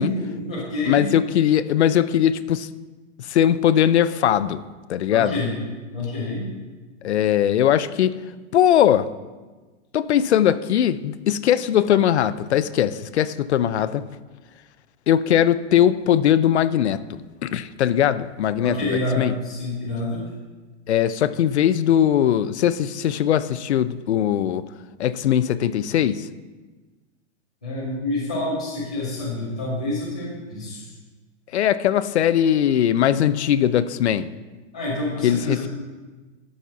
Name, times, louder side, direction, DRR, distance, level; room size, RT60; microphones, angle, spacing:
voice 1, 0.0-1.1 5.1-5.6 5.9-6.5 18.6-20.2 27.6-30.8 34.7-35.7, left 2 dB, 5° left, -9 dB, 0.4 m, -27 dB
voice 2, 0.9-2.7 3.2-4.6 4.9-5.4 7.0-8.2 8.5-9.1 9.9-14.1 15.1-17.0 17.4-18.9 19.2-19.3 20.9-24.6 25.0-26.3 31.5-34.3 35.2-35.7, left 10 dB, 65° left, 15 dB, 0.5 m, -20 dB
12.0 x 4.2 x 5.8 m, 1.3 s
hypercardioid pair, 175°, 36 cm